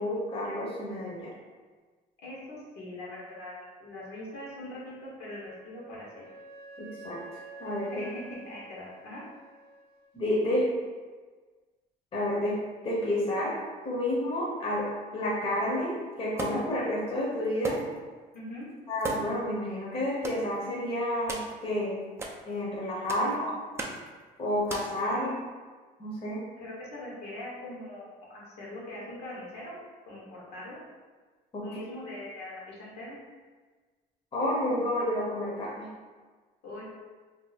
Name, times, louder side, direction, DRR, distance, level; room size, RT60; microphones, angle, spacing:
voice 1, 0.0-1.3 6.8-7.2 7.6-8.1 10.1-10.7 12.1-12.6 12.8-13.5 13.8-14.9 15.1-17.8 18.9-22.1 22.4-23.5 24.4-25.3 26.0-26.4 31.5-31.6 34.3-35.9, left 1 dB, 35° left, -5 dB, 0.8 m, -30 dB
voice 2, 2.2-6.2 7.9-9.2 18.3-18.7 23.2-23.5 25.1-25.4 26.5-29.8 30.1-30.8 31.6-33.2 36.6-36.8, left 1 dB, 75° left, -5 dB, 1.1 m, -42 dB
Wind instrument woodwind instrument, 5.5-10.1, right 3 dB, 70° right, 0.5 m, -48 dB
sound 1, 16.4-16.8 17.6-18.0 18.3-18.4 19.0-19.5 20.2-20.4 21.3-21.5 22.2-22.4 23.1-23.3 23.8-24.1 24.7-25.0, right 2 dB, 15° right, 0.4 m, -36 dB
2.7 x 2.0 x 4.0 m, 1.4 s
cardioid pair, 110°, 17 cm